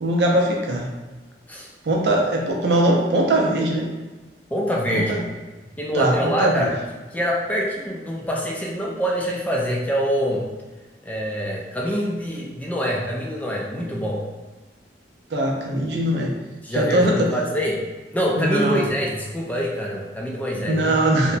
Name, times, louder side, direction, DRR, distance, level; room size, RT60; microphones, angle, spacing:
voice 1, 0.0-0.9 1.8-3.9 4.9-5.2 5.9-6.7 15.3-16.4 16.7-17.3 18.4-18.9 20.6-21.4, right 1 dB, 65° right, -1 dB, 0.5 m, -21 dB
voice 2, 4.5-5.2 5.8-6.7 7.1-10.4 11.0-14.2 16.6-17.8 18.1-21.0 21.2-21.4, equal, 10° left, -2 dB, 0.3 m, -25 dB
2.8 x 2.1 x 2.5 m, 1.2 s
head